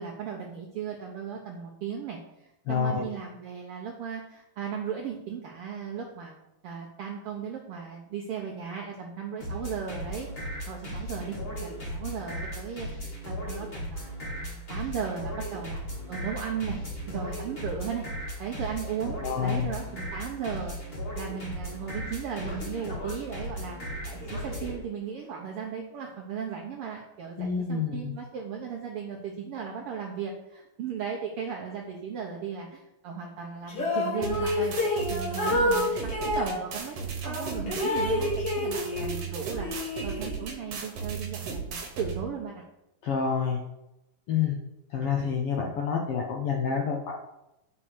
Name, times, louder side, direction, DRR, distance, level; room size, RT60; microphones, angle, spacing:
voice 1, 0.0-6.3 6.6-10.3 10.7-15.8 16.1-16.8 17.1-18.0 18.4-34.7 35.1-42.6, right 7 dB, 80° right, 0 dB, 1.3 m, -36 dB
voice 2, 2.7-3.1 19.2-19.7 27.4-28.1 43.0-43.6 44.3-44.6 44.9-47.2, left 6 dB, 75° left, 0 dB, 1.3 m, -28 dB
sound 1, 9.4-24.8, equal, 30° left, 1.2 m, -36 dB
sound 2, 33.7-36.6 37.2-39.2 39.5-40.6, left 2 dB, 50° left, 2.8 m, -28 dB
sound 3, 34.2-42.2, right 6 dB, 60° right, 1.9 m, -35 dB
5.7 x 5.3 x 6.5 m, 0.90 s
omnidirectional pair, 3.5 m